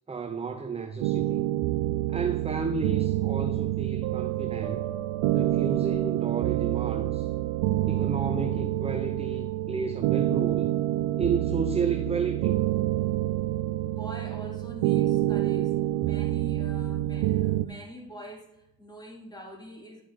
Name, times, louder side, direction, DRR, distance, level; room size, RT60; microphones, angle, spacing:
voice 1, 0.1-1.4 2.1-4.9 5.3-7.3 7.9-10.8 11.2-12.6, right 5 dB, 15° right, 0.7 m, -32 dB
sound 1, 1.0-17.7, right 15 dB, 80° right, 0.7 m, -27 dB
voice 2, 13.8-20.0, right 1 dB, 10° left, 2.5 m, -44 dB
11.0 x 4.7 x 4.0 m
supercardioid pair, 90°, 45 cm